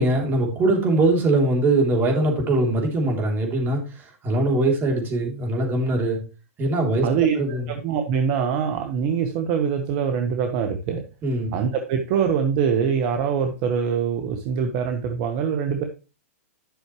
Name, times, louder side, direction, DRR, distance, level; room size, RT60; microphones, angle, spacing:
voice 1, 0.0-6.2 6.6-7.7 11.2-11.6, right 2 dB, 25° right, 2 dB, 3.4 m, -22 dB
voice 2, 7.0-7.3 7.7-11.0 11.5-15.8, right 7 dB, 45° right, 5 dB, 1.3 m, -23 dB
11.5 x 6.3 x 3.3 m, 0.32 s
hypercardioid pair, 125°, 8 cm